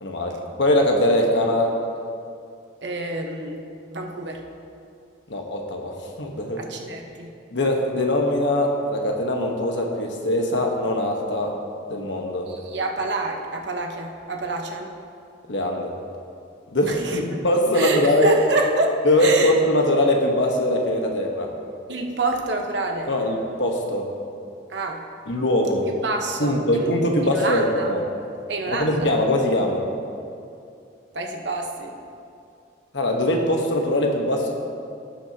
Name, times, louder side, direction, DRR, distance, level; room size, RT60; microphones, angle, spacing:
voice 1, 0.0-1.8 5.3-6.6 7.5-11.5 11.9-12.5 15.5-15.9 16.7-18.3 19.0-21.5 23.1-24.1 25.3-25.9 26.4-28.0 28.7-29.8 32.9-34.5, left 1 dB, 75° left, 1 dB, 1.2 m, -22 dB
voice 2, 2.8-3.6 3.9-4.4 6.6-7.3 12.5-14.9 16.8-17.2 17.7-19.5 21.9-23.1 24.7-25.0 26.0-26.9 27.2-28.0 28.5-29.1 31.1-31.9, right 2 dB, 70° right, 2 dB, 1.0 m, -27 dB
17.5 x 6.1 x 2.8 m, 2.5 s
head